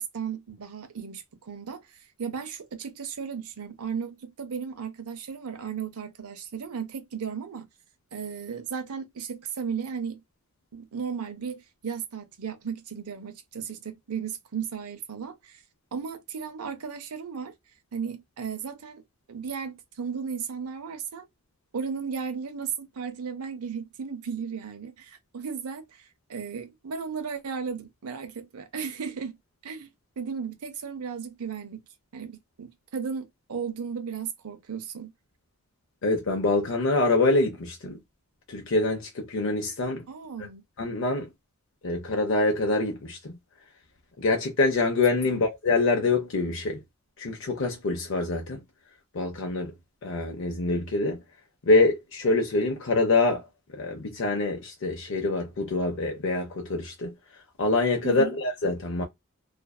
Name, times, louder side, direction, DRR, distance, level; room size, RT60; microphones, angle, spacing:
voice 1, 0.0-1.9 2.2-7.7 8.1-10.2 10.7-15.6 15.9-17.5 17.9-19.0 19.3-21.2 21.7-29.4 29.6-29.9 30.2-31.8 32.1-35.1 40.1-40.6 45.3-45.4 58.0-58.3, right 6 dB, 85° right, 0.6 m, -35 dB
voice 2, 36.0-38.0 38.5-40.0 40.4-40.5 40.8-41.3 41.8-43.4 44.2-46.8 47.2-48.6 49.1-49.7 50.0-51.2 51.7-53.5 53.7-57.1 57.6-59.0, left 3 dB, 60° left, 0.5 m, -25 dB
2.6 x 2.3 x 2.2 m
head